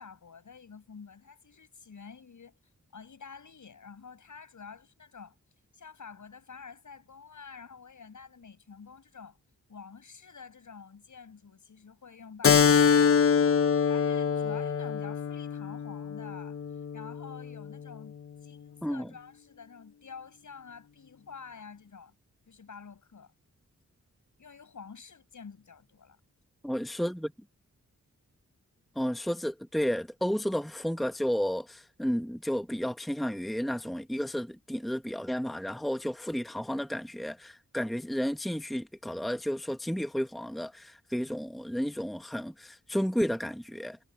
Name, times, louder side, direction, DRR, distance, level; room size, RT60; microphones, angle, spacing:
voice 1, 0.0-2.6 2.9-5.4 5.7-9.4 9.7-16.6 16.9-18.2 18.4-22.2 22.5-23.3 24.4-26.2, left 5 dB, 70° left, 7.9 m, -49 dB
Keyboard (musical), 12.4-17.6, left 6 dB, 45° left, 0.6 m, -25 dB
voice 2, 18.8-19.1 26.6-27.3 28.9-44.0, equal, ahead, 1.0 m, -32 dB
wide cardioid pair, 140°, 31 cm